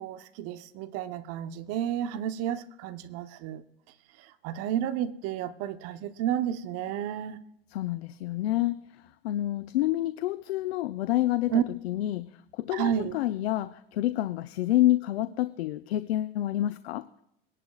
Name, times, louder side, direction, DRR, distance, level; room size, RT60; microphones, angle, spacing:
voice 1, 0.0-3.6 4.2-7.4 11.5-11.6 12.7-13.1, right 10 dB, 50° right, 1.0 m, -31 dB
voice 2, 7.7-11.5 11.8-17.1, left 14 dB, 80° left, 0.6 m, -28 dB
22.5 x 11.0 x 2.4 m
hypercardioid pair, 100°, 31 cm